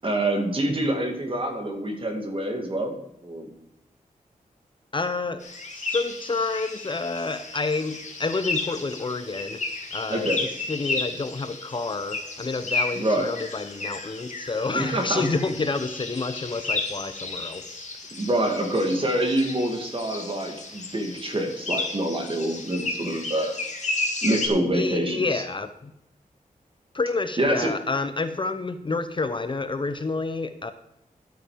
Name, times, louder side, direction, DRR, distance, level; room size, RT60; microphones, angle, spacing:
voice 1, 0.0-3.0 3.2-3.5 10.1-10.4 13.0-13.3 14.7-15.2 18.1-23.5 24.2-25.4 27.4-27.7, right 1 dB, 40° right, 3 dB, 2.3 m, -26 dB
voice 2, 4.9-5.4 5.7-9.6 9.9-10.3 10.7-17.8 24.7-25.9 26.9-30.7, left 3 dB, 35° left, 10 dB, 0.7 m, -29 dB
sound 1, 5.4-24.5, left 3 dB, 55° left, 1.9 m, -33 dB
11.5 x 9.0 x 5.1 m, 0.81 s
wide cardioid pair, 125°, 15 cm